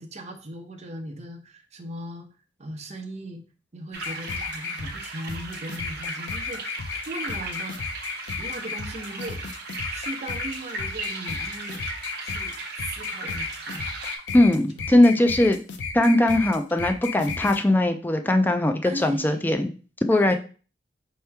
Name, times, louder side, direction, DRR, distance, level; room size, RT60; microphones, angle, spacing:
voice 1, 0.0-2.3 2.6-3.4 3.7-7.8 8.4-9.4 9.9-11.8 12.2-13.8 14.7-15.2 18.8-19.6 20.1-20.4, right 1 dB, 40° right, 3 dB, 0.7 m, -38 dB
sound 1, 3.9-14.2, right 3 dB, 60° right, 0.9 m, -37 dB
sound 2, 4.0-17.6, left 5 dB, 80° left, 0.5 m, -34 dB
voice 2, 14.3-15.6 15.9-19.7 20.1-20.3, left 1 dB, 10° left, 5 dB, 0.3 m, -20 dB
4.5 x 2.9 x 3.4 m, 0.37 s
head